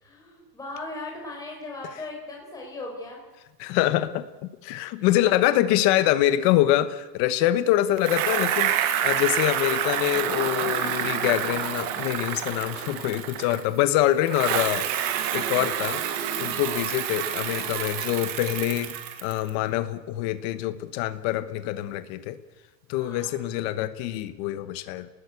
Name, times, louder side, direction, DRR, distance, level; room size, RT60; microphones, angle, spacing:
voice 1, 0.0-3.2 5.0-5.1 22.9-23.5, left 2 dB, 5° left, -1 dB, 5.7 m, -38 dB
voice 2, 3.6-16.0 16.4-22.4 22.9-25.1, left 13 dB, 30° left, 12 dB, 1.0 m, -25 dB
Bicycle, 8.0-13.8 14.3-19.5, right 10 dB, 30° right, 1.9 m, -28 dB
29.5 x 19.5 x 8.2 m, 1.2 s
supercardioid pair, 175°, 50 cm